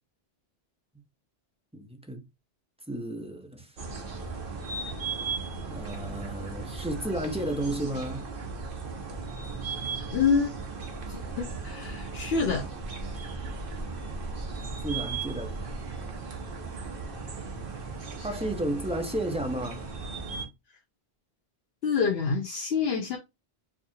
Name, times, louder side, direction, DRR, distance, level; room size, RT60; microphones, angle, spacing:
voice 1, 1.7-2.2 2.9-3.8 5.7-8.3 14.8-15.6 18.2-19.9, right 1 dB, 5° right, 0.6 m, -33 dB
sound 1, 3.8-20.5, right 4 dB, 60° right, 1.0 m, -36 dB
voice 2, 10.1-10.5 11.1-12.7 21.8-23.2, left 5 dB, 75° left, 0.9 m, -27 dB
4.7 x 2.4 x 2.7 m
omnidirectional pair, 1.1 m